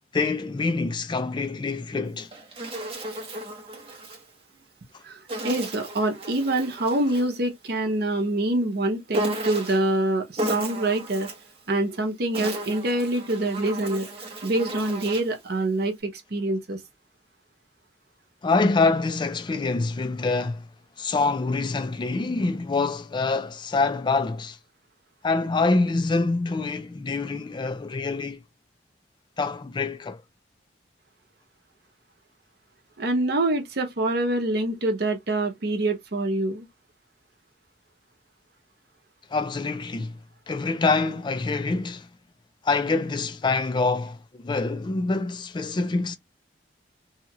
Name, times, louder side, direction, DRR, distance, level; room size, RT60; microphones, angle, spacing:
voice 1, 0.1-2.3 18.4-20.6 21.0-24.6 25.2-28.4 29.4-30.2 39.3-40.2 40.5-42.1 42.6-46.2, left 3 dB, 25° left, 0.3 m, -25 dB
Insect, 2.0-4.2 5.3-7.4 9.1-9.9 10.4-11.5 12.1-15.4, right 1 dB, 35° right, 0.9 m, -34 dB
voice 2, 5.0-11.3 11.7-14.1 14.4-16.8 33.0-36.7, right 2 dB, 60° right, 0.8 m, -25 dB
2.8 x 2.3 x 2.9 m
head